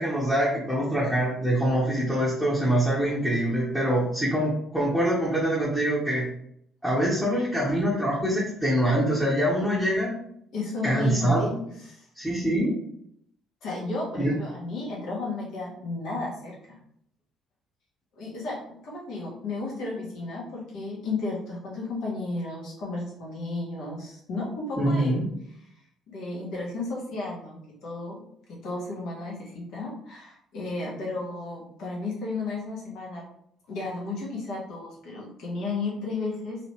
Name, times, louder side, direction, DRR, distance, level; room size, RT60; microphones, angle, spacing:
voice 1, 0.0-6.3 6.8-10.1 10.8-11.6 12.2-12.8 14.1-14.4 24.7-25.3, right 1 dB, ahead, -8 dB, 1.2 m, -24 dB
voice 2, 10.5-11.5 11.8-12.1 13.6-16.8 18.2-25.2 26.1-28.2 28.5-33.2 33.7-36.6, left 3 dB, 55° left, -3 dB, 1.2 m, -33 dB
3.1 x 2.9 x 3.2 m, 0.70 s
figure-of-eight pair, 50°, 0 cm